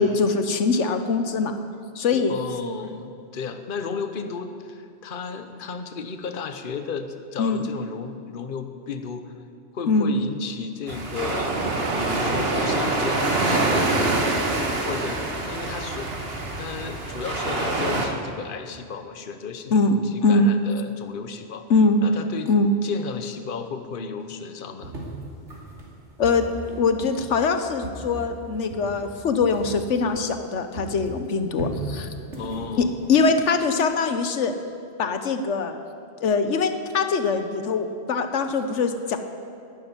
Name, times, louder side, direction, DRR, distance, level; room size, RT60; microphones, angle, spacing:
voice 1, 0.0-1.5 2.0-2.3 7.4-7.7 9.9-10.1 19.7-20.0 20.2-20.5 21.7-22.0 22.5-22.7 26.2-26.5 26.8-32.1 32.8-34.5 35.0-35.8 36.2-39.2, left 4 dB, 85° left, 8 dB, 1.3 m, -22 dB
voice 2, 2.1-9.3 9.7-14.1 14.8-15.2 15.5-16.1 16.6-21.7 22.0-22.5 22.8-24.9 32.4-33.0, left 5 dB, 50° left, 8 dB, 1.1 m, -34 dB
sound 1, 10.9-18.1, right 2 dB, 55° right, 1.8 m, -25 dB
sound 2, 24.8-30.5 30.7-33.7, right 1 dB, 80° right, 3.1 m, -37 dB
11.5 x 11.0 x 9.7 m, 2.4 s
omnidirectional pair, 1.2 m